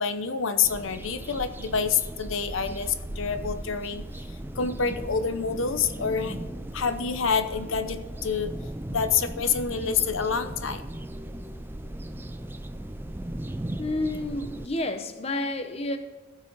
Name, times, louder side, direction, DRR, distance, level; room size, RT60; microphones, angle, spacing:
voice 1, 0.0-4.0 4.6-6.4 6.7-8.5 8.9-10.8, left 6 dB, 75° left, 0.7 m, -27 dB
sound 1, 0.6-14.7, right 1 dB, 10° right, 0.4 m, -37 dB
voice 2, 13.8-16.0, left 2 dB, 30° left, 0.7 m, -30 dB
15.5 x 6.2 x 3.8 m
head